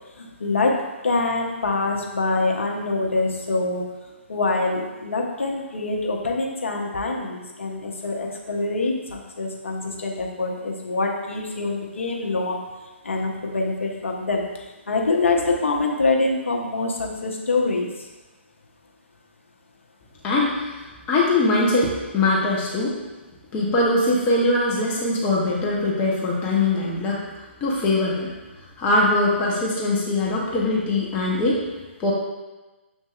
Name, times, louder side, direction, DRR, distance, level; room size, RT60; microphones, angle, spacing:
voice 1, 0.2-0.7 1.0-3.8 4.3-12.6 13.0-14.5 14.9-17.9, left 3 dB, 75° left, 0 dB, 0.8 m, -25 dB
voice 2, 20.2-20.7 21.1-23.0 23.5-27.2 27.6-28.3 28.8-31.6 32.0-32.1, left 2 dB, 20° left, -5 dB, 0.8 m, -21 dB
7.1 x 2.7 x 2.4 m, 1.2 s
figure-of-eight pair, 135°, 7 cm